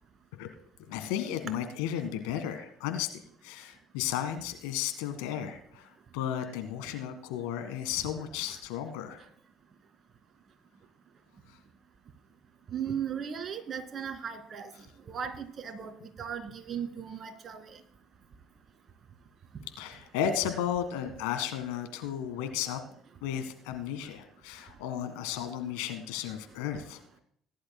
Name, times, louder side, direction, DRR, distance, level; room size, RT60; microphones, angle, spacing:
voice 1, 0.9-3.1 3.4-9.2 19.8-22.8 23.2-27.0, left 10 dB, 80° left, 9 dB, 1.6 m, -34 dB
voice 2, 12.7-14.7 15.1-17.8, right 7 dB, 45° right, 7 dB, 2.2 m, -37 dB
18.5 x 11.5 x 2.2 m, 0.65 s
hypercardioid pair, 65°, 0 cm